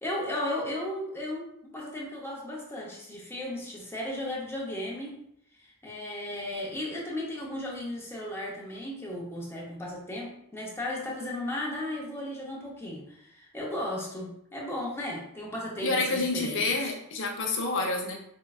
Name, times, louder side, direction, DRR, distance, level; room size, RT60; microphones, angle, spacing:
voice 1, 0.0-5.1 5.6-16.9, left 1 dB, 10° left, -4 dB, 0.7 m, -35 dB
voice 2, 15.8-18.1, left 3 dB, 60° left, 0 dB, 0.7 m, -28 dB
4.5 x 2.2 x 2.3 m, 0.73 s
head